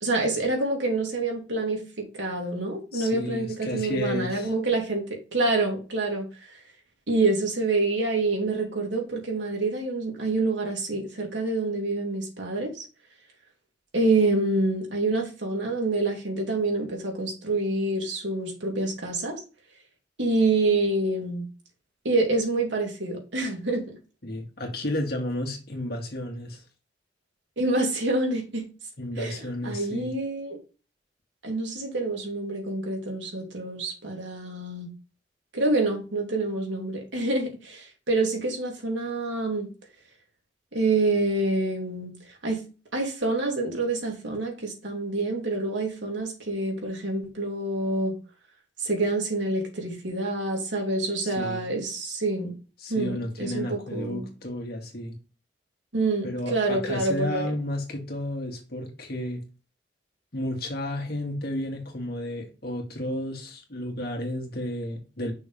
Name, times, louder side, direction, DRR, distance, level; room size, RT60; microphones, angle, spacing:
voice 1, 0.0-6.5 7.1-12.8 13.9-19.4 20.2-21.4 22.0-24.0 27.6-28.7 29.2-30.6 31.4-34.9 35.5-39.7 40.7-42.1 42.4-42.6 42.9-48.2 48.8-52.5 52.9-54.3 55.9-57.5, right 2 dB, 75° right, 2.6 m, -27 dB
voice 2, 2.9-4.5 24.2-26.6 29.0-30.1 51.2-51.7 52.8-55.1 56.2-59.4 60.3-65.3, left 1 dB, 55° left, 2.0 m, -32 dB
6.1 x 3.5 x 5.2 m
head